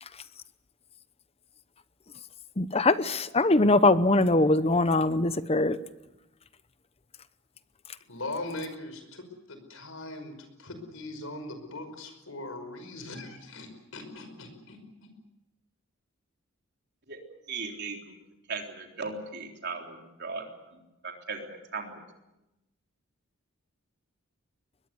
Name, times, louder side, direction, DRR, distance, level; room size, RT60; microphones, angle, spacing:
voice 1, 2.6-5.8, left 2 dB, 30° left, 14 dB, 0.8 m, -22 dB
voice 2, 8.1-15.1, left 2 dB, 75° left, 8 dB, 5.4 m, -40 dB
voice 3, 17.5-18.1 18.5-20.4 20.7-22.0, right 4 dB, 50° right, 2 dB, 3.8 m, -37 dB
22.5 x 21.5 x 8.1 m, 0.96 s
head